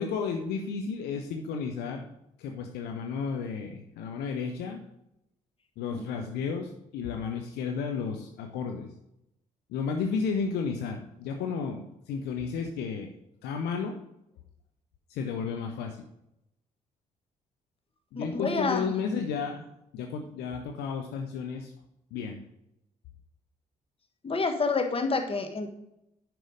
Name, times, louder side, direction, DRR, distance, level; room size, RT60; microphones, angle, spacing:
voice 1, 0.0-2.1 2.4-4.8 5.8-8.9 9.7-13.1 13.4-14.0 15.1-16.0 18.1-19.6 19.9-21.7 22.1-22.4, left 5 dB, 60° left, 3 dB, 0.8 m, -32 dB
voice 2, 18.1-18.9 24.2-25.7, left 4 dB, 30° left, 6 dB, 1.4 m, -28 dB
10.5 x 4.7 x 5.1 m, 0.82 s
figure-of-eight pair, 40°, 19 cm